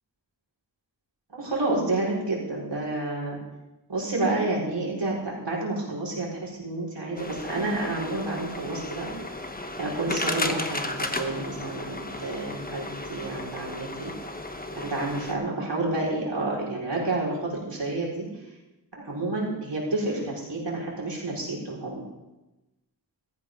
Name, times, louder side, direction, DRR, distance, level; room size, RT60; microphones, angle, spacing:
voice 1, 1.3-3.4 3.9-9.1 9.8-14.1 14.7-18.2 19.0-22.0, right 2 dB, 85° right, -4 dB, 4.8 m, -29 dB
sound 1, 7.2-15.3, left 2 dB, 20° left, 1.2 m, -34 dB
16.0 x 14.5 x 3.7 m, 1.0 s
wide cardioid pair, 65°, 41 cm